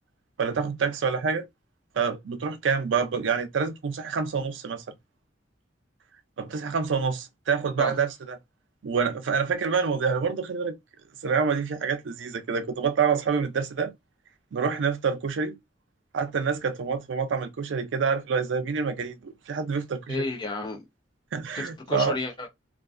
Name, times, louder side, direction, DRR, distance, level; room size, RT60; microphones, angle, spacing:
voice 1, 0.4-1.5 2.0-4.8 6.4-8.4 8.8-10.8 11.2-13.9 14.5-15.6 16.1-20.2 21.3-22.2, right 5 dB, 70° right, 0.4 m, -27 dB
voice 2, 20.1-20.8 21.5-22.5, left 3 dB, 25° left, 0.4 m, -32 dB
2.3 x 2.2 x 2.4 m
head